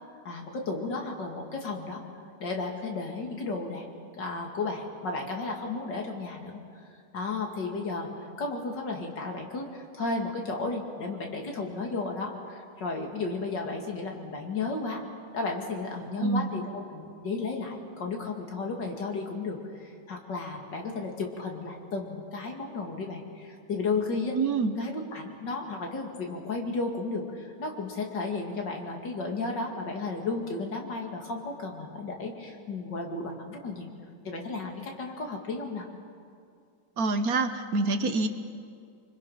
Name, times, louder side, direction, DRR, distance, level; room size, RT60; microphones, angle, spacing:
voice 1, 0.2-2.0 2.4-3.9 4.1-6.5 7.1-8.1 8.4-15.0 15.3-24.4 24.8-33.9 34.2-35.9, left 3 dB, 80° left, 1 dB, 3.1 m, -33 dB
voice 2, 16.2-16.5 24.3-24.8 37.0-38.3, right 3 dB, 60° right, 9 dB, 1.5 m, -26 dB
25.0 x 25.0 x 5.8 m, 2.3 s
omnidirectional pair, 1.9 m